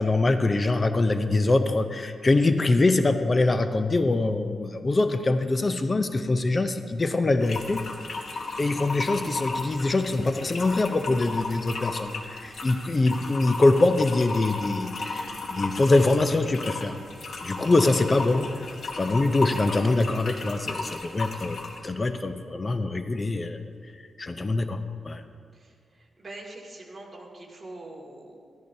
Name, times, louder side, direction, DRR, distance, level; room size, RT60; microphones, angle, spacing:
voice 1, 0.0-7.8 8.6-17.0 17.4-18.5 19.0-23.6 24.2-25.2, left 2 dB, 30° left, 9 dB, 0.5 m, -24 dB
sound 1, 7.4-21.8, left 3 dB, 60° left, 1.1 m, -35 dB
voice 2, 25.5-28.5, right 2 dB, 35° right, -2 dB, 2.1 m, -44 dB
14.0 x 13.0 x 2.7 m, 2.2 s
wide cardioid pair, 115°, 0 cm